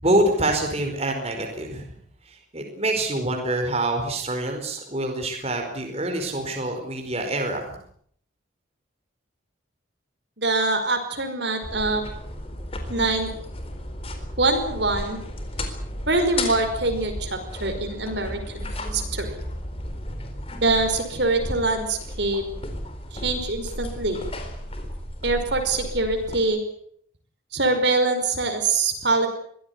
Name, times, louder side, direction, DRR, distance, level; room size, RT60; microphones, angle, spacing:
voice 1, 0.0-1.9 2.2-7.8, right 1 dB, 30° right, 3 dB, 4.8 m, -26 dB
voice 2, 10.4-12.0 12.9-13.4 14.4-15.2 16.1-19.4 20.6-22.4 23.1-24.2 25.2-26.6 27.5-29.3, right 3 dB, 60° right, 6 dB, 5.2 m, -24 dB
sound 1, 11.6-26.4, left 1 dB, 30° left, 4.1 m, -34 dB
23.5 x 17.0 x 9.7 m, 0.65 s
head